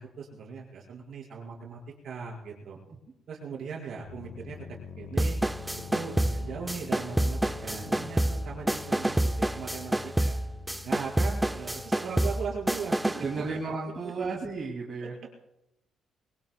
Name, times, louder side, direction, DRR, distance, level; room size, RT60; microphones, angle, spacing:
voice 1, 0.0-2.8 3.3-4.6 5.0-5.4 5.9-10.4 10.8-13.2 14.0-14.4 15.0-15.3, right 5 dB, 65° right, -2 dB, 5.3 m, -39 dB
sound 1, 4.0-13.6, left 6 dB, 85° left, 1.3 m, -46 dB
sound 2, 5.2-13.3, right 1 dB, 10° right, 0.4 m, -28 dB
voice 2, 7.5-8.1 13.1-15.1, right 4 dB, 40° right, -1 dB, 2.7 m, -34 dB
23.0 x 20.5 x 2.3 m, 0.89 s
cardioid pair, 90°, 0 cm